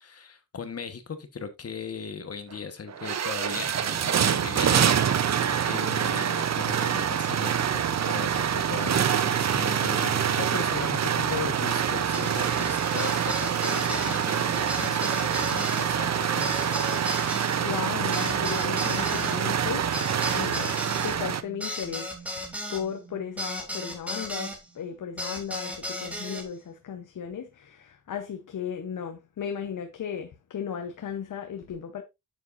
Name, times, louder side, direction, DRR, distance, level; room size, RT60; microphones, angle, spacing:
voice 1, 0.0-5.3 5.6-16.8, left 5 dB, 45° left, 1.3 m, -38 dB
sound 1, 2.5-2.6 2.9-21.4, right 8 dB, 55° right, 0.8 m, -26 dB
sound 2, 12.1-24.6 25.2-26.4, equal, 5° right, 2.6 m, -36 dB
voice 2, 17.6-20.0 20.3-20.8 21.0-32.0, left 8 dB, 70° left, 1.0 m, -35 dB
9.3 x 7.4 x 2.6 m
wide cardioid pair, 130°, 33 cm